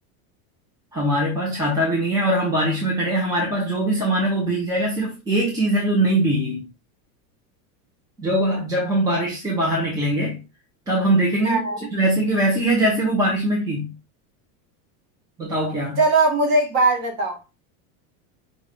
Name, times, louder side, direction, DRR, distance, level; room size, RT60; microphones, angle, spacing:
voice 1, 0.9-6.6 8.2-10.4 10.9-11.6 11.9-13.9 15.4-16.0, right 1 dB, 10° right, 0.9 m, -22 dB
voice 2, 11.4-11.8 16.0-17.4, right 2 dB, 40° right, 2.0 m, -19 dB
5.4 x 2.5 x 3.6 m
supercardioid pair, 180°, 43 cm